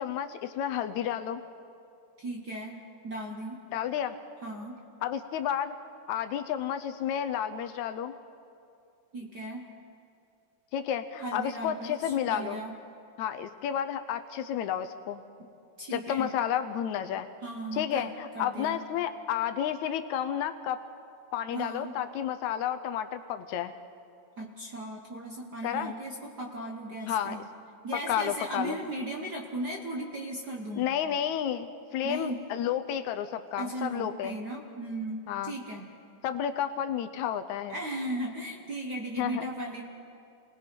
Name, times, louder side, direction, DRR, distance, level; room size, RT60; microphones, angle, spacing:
voice 1, 0.0-1.4 3.7-4.2 5.0-5.8 6.1-8.1 10.7-12.6 13.2-15.2 15.9-17.3 17.7-20.8 21.3-23.7 25.6-25.9 27.1-27.4 28.1-28.8 30.8-34.4 35.3-35.5 36.2-37.8 39.2-39.4, left 9 dB, 75° left, 10 dB, 1.9 m, -31 dB
voice 2, 2.2-2.8 3.0-3.6 4.4-4.8 9.1-9.7 11.2-12.7 15.8-16.3 17.4-18.8 21.5-22.0 24.4-27.4 27.8-30.8 32.0-32.4 33.6-35.8 37.7-39.8, right 1 dB, 50° right, 0 dB, 1.2 m, -37 dB
29.0 x 20.0 x 5.3 m, 2.6 s
omnidirectional pair, 3.6 m